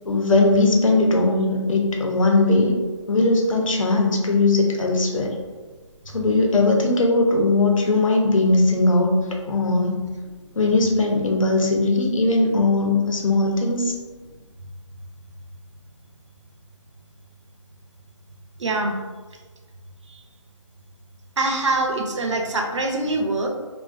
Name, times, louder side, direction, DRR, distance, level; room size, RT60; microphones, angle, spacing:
voice 1, 0.0-2.8 3.1-5.3 6.1-9.2 9.5-10.0 10.6-13.9, left 2 dB, 85° left, 0 dB, 0.6 m, -19 dB
voice 2, 18.6-19.0 20.1-20.2 21.4-23.5, right 2 dB, 65° right, 2 dB, 0.5 m, -24 dB
2.4 x 2.2 x 2.4 m, 1.3 s
hypercardioid pair, 175°, 17 cm